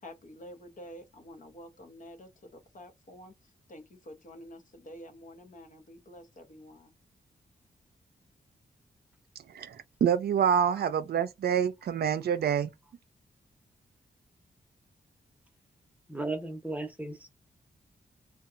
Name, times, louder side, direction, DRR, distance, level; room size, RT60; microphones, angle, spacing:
voice 1, 0.0-3.3 3.7-6.9, equal, 50° left, 0.8 m, -49 dB
voice 2, 9.5-12.7, right 8 dB, 70° right, 0.4 m, -27 dB
voice 3, 16.1-17.3, right 2 dB, 10° right, 0.8 m, -35 dB
2.7 x 2.3 x 2.5 m
cardioid pair, 80°, 17 cm